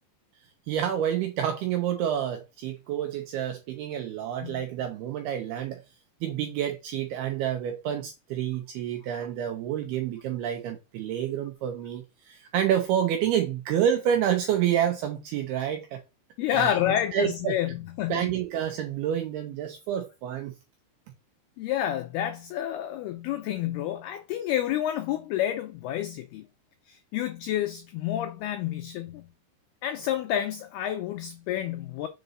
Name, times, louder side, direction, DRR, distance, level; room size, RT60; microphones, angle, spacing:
voice 1, 0.7-5.8 6.2-16.0 16.5-16.8 17.1-17.5 18.1-20.5, right 10 dB, 85° right, 2.3 m, -28 dB
voice 2, 16.4-18.3 21.6-26.5 26.9-29.3 29.8-32.1, left 11 dB, 90° left, 2.2 m, -29 dB
7.6 x 3.9 x 5.3 m
omnidirectional pair, 5.4 m